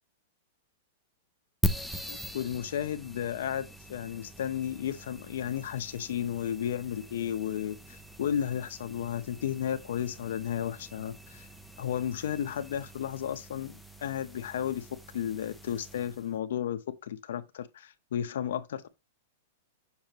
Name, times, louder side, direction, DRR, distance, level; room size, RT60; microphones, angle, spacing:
sound 1, 1.6-16.3, equal, ahead, 0.5 m, -41 dB
voice 1, 2.1-11.5 11.8-14.9 15.1-18.9, left 9 dB, 70° left, 0.9 m, -33 dB
7.2 x 5.9 x 3.0 m
supercardioid pair, 175°, 0 cm